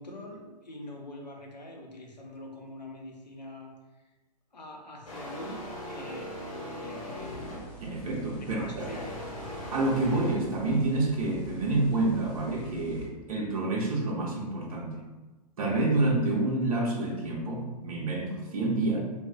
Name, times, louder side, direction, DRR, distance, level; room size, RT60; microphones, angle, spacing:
voice 1, 0.0-4.0 4.5-7.4 8.4-9.2, left 1 dB, 85° left, 1 dB, 0.6 m, -44 dB
sound 1, 5.1-7.9 8.8-10.3, left 1 dB, 55° left, 0.9 m, -39 dB
sound 2, 7.2-13.1, right 1 dB, 30° left, 0.6 m, -45 dB
voice 2, 7.8-8.7 9.7-15.0 15.6-19.0, right 2 dB, 55° right, -1 dB, 0.7 m, -28 dB
2.3 x 2.0 x 3.6 m, 1.2 s
figure-of-eight pair, 110°, 21 cm